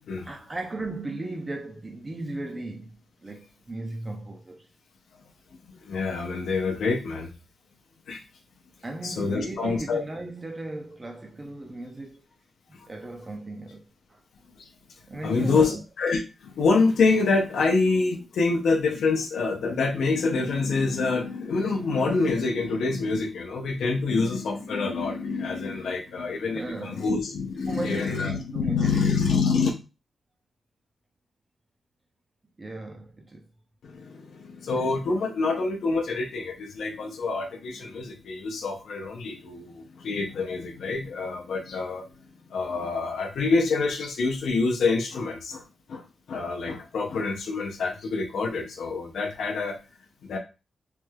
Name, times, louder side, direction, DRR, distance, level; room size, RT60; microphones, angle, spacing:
voice 1, 0.2-4.7 8.8-12.2 12.9-13.8 14.1-14.2 15.1-15.8 26.5-27.2 27.7-29.2 32.6-33.5, right 2 dB, 20° right, 0.3 m, -36 dB
voice 2, 5.8-7.3 8.1-8.2 9.0-10.0 12.7-12.9 14.6-14.7 15.2-29.7 33.8-42.1 42.5-45.6 45.9-46.0 46.3-49.8 50.3-50.4, left 4 dB, 75° left, 0.5 m, -26 dB
3.1 x 2.2 x 3.2 m
wide cardioid pair, 180°, 0 cm